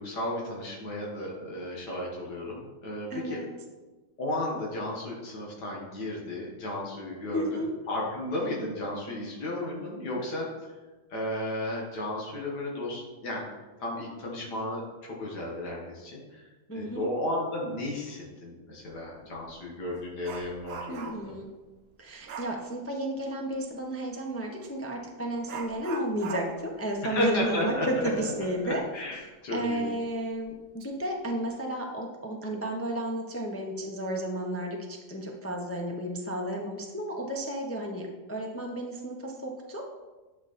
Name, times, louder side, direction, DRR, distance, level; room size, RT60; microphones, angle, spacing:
voice 1, 0.0-3.4 4.2-7.4 7.9-10.5 11.1-13.4 13.8-16.4 16.7-21.3 27.0-28.1 28.6-29.9, left 1 dB, 80° left, -3 dB, 2.3 m, -33 dB
voice 2, 3.1-3.5 7.3-7.7 16.7-17.1 20.9-21.5 22.0-28.8 29.1-29.2 29.5-39.8, right 1 dB, 10° left, 0 dB, 0.7 m, -33 dB
Dog, 18.9-19.1 19.5-21.4 22.3-22.6 24.6-24.8 25.5-28.8 29.1-29.2 29.7-29.8 30.5-30.9 31.2-31.5, right 5 dB, 55° right, 0.7 m, -42 dB
11.5 x 5.8 x 4.3 m, 1.2 s
omnidirectional pair, 1.8 m